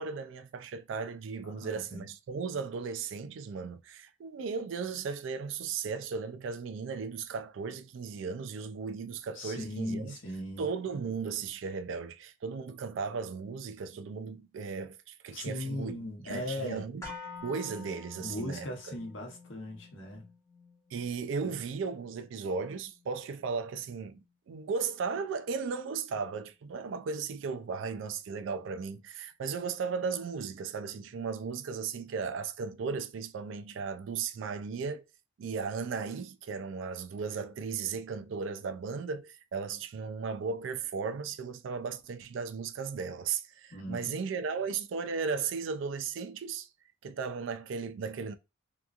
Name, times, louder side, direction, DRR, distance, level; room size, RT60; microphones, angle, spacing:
voice 1, 0.0-10.2 10.6-17.0 17.4-18.7 20.9-35.0 35.4-46.7 47.0-48.3, right 5 dB, 70° right, 0.3 m, -36 dB
voice 2, 1.4-2.0 9.3-10.6 15.3-16.9 18.2-20.3 21.4-21.5 43.7-44.2, left 1 dB, 75° left, 0.9 m, -38 dB
sound 1, 17.0-25.1 25.4-25.5, left 4 dB, 15° left, 0.8 m, -50 dB
2.9 x 2.3 x 2.3 m
head